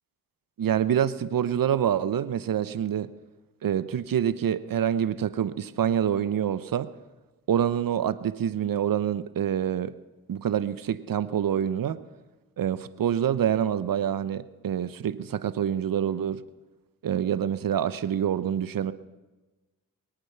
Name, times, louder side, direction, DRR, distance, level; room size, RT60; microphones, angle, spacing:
voice 1, 0.6-3.1 3.6-6.9 7.5-9.9 10.3-12.0 12.6-16.4 17.0-18.9, right 9 dB, 65° right, 15 dB, 0.9 m, -26 dB
23.0 x 9.0 x 5.8 m, 1.2 s
supercardioid pair, 45°, 36 cm